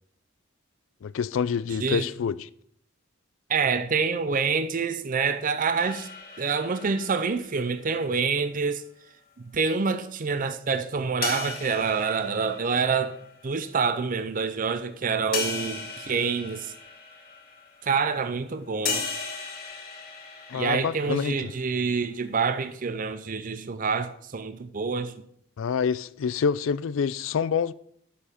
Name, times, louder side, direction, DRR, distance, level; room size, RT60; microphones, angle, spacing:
voice 1, 1.0-2.5 20.5-21.5 25.6-27.7, left 6 dB, 70° left, 0.4 m, -27 dB
voice 2, 3.5-6.1 6.4-8.8 9.4-13.2 13.4-16.7 17.8-19.1 20.5-25.1, right 5 dB, 40° right, 0.5 m, -27 dB
sound 1, 5.8-8.5 11.2-13.7 14.3-14.4 15.3-18.1 18.8-21.8, left 5 dB, 45° left, 2.4 m, -37 dB
7.0 x 6.9 x 5.7 m
head